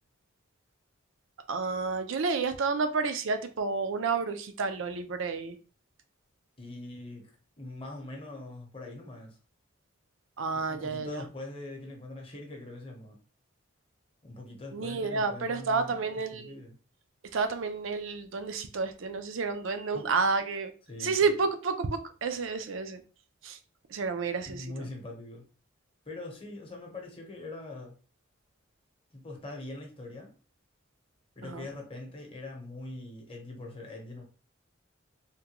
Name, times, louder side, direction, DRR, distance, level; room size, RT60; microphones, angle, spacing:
voice 1, 1.5-5.6 10.4-11.2 14.7-16.6 17.3-20.7 21.0-23.0 23.4-23.6 23.9-24.6 31.5-31.6, right 4 dB, 70° right, 0.5 m, -30 dB
voice 2, 6.6-7.3 7.6-9.4 10.5-13.2 14.2-16.8 19.9-20.2 20.9-21.3 24.4-25.4 26.1-27.9 29.1-30.3 31.4-34.2, left 2 dB, 25° left, 0.8 m, -43 dB
3.6 x 2.2 x 2.8 m
head